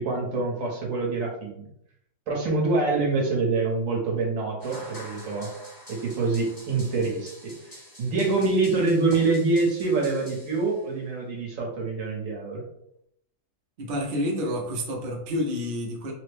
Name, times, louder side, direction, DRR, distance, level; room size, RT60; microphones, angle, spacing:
voice 1, 0.0-1.7 2.3-5.5 5.9-12.6, right 3 dB, 60° right, 0 dB, 1.1 m, -26 dB
sound 1, 4.6-11.0, equal, 20° left, 0.7 m, -47 dB
voice 2, 13.8-16.1, left 1 dB, 75° right, -1 dB, 0.5 m, -29 dB
3.3 x 2.1 x 3.3 m, 0.75 s
omnidirectional pair, 1.8 m